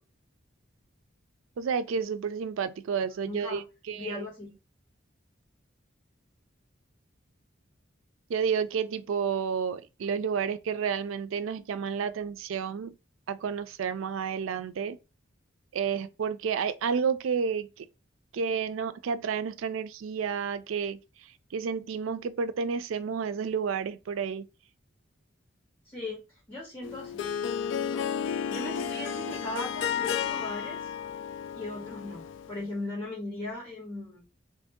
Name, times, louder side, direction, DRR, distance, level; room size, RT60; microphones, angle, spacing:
voice 1, 1.6-4.3 8.3-12.9 13.3-15.0 15.7-17.9 18.3-24.5, right 6 dB, 85° right, 0.4 m, -31 dB
voice 2, 3.2-3.6 4.0-4.5 25.8-26.2 26.5-27.3 27.6-27.7 28.5-31.0 31.6-34.2, left 2 dB, 25° left, 1.9 m, -38 dB
Harp, 26.8-32.6, left 8 dB, 65° left, 0.3 m, -32 dB
3.1 x 2.6 x 3.6 m
head